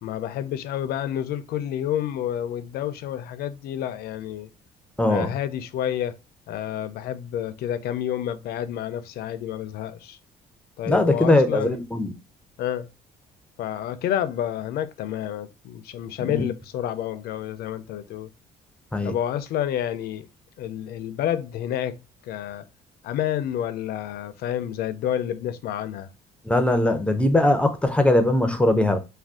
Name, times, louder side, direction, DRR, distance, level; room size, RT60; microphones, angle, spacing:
voice 1, 0.0-4.5 5.1-6.2 6.5-10.2 10.8-11.8 12.6-12.9 13.6-18.3 19.0-20.3 20.6-22.0 22.2-22.6 23.0-26.1, left 10 dB, 70° left, 0.4 m, -29 dB
voice 2, 5.0-5.3 10.9-12.1 16.2-16.4 18.9-19.1 26.4-29.0, left 1 dB, 5° left, 0.4 m, -20 dB
2.5 x 2.3 x 3.4 m
cardioid pair, 110°, 17 cm